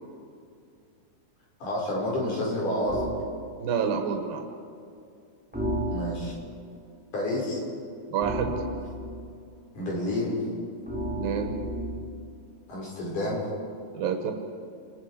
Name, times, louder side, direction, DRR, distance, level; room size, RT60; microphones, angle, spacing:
voice 1, 1.6-3.1 5.9-6.4 7.1-7.6 9.7-10.4 12.7-13.5, left 1 dB, 65° left, -4 dB, 7.1 m, -29 dB
sound 1, 2.9-3.3 5.5-6.5 8.2-9.3 10.9-12.2, equal, 5° right, 1.3 m, -32 dB
voice 2, 3.6-4.4 8.1-8.5 11.2-11.5 13.9-14.3, right 7 dB, 90° right, 4 dB, 3.2 m, -28 dB
29.5 x 20.5 x 5.1 m, 2.5 s
omnidirectional pair, 4.0 m